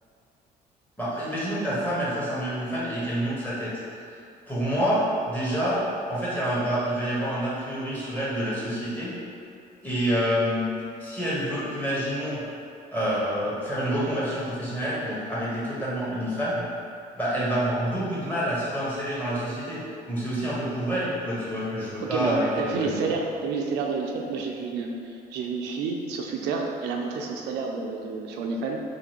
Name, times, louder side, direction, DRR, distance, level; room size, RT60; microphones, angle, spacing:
voice 1, 1.0-3.7 4.5-5.8 6.1-9.1 9.8-10.7 11.0-12.4 12.9-16.6 17.1-23.0, equal, 10° left, -9 dB, 1.2 m, -27 dB
voice 2, 22.0-28.8, right 4 dB, 85° right, 1 dB, 0.4 m, -30 dB
3.9 x 2.8 x 3.0 m, 2.5 s
cardioid pair, 110°, 17 cm